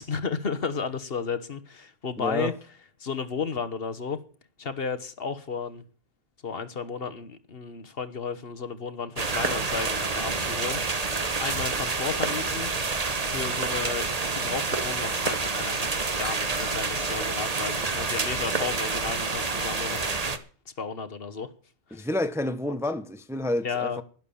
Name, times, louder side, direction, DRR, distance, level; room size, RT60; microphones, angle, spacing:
voice 1, 0.0-2.5 3.0-4.2 4.6-5.8 6.4-11.0 11.4-12.7 13.3-20.1 20.8-21.5 21.9-22.1 22.7-22.8 23.6-24.0, left 5 dB, 60° left, 1.4 m, -33 dB
voice 2, 2.2-2.5 21.9-24.0, left 1 dB, 5° right, 0.7 m, -29 dB
sound 1, 9.2-20.4, right 4 dB, 35° right, 1.2 m, -28 dB
12.0 x 11.0 x 7.0 m
omnidirectional pair, 1.1 m